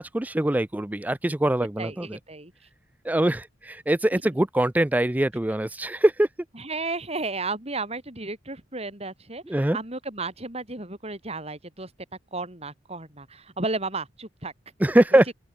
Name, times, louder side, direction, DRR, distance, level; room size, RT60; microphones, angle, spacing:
voice 1, 0.0-2.2 3.0-6.3 9.5-9.8 14.8-15.2, right 1 dB, 10° right, 0.4 m, -23 dB
voice 2, 1.8-2.5 4.1-4.2 6.6-11.9 12.3-14.5 15.1-15.2, right 3 dB, 35° right, 5.8 m, -33 dB
open air
head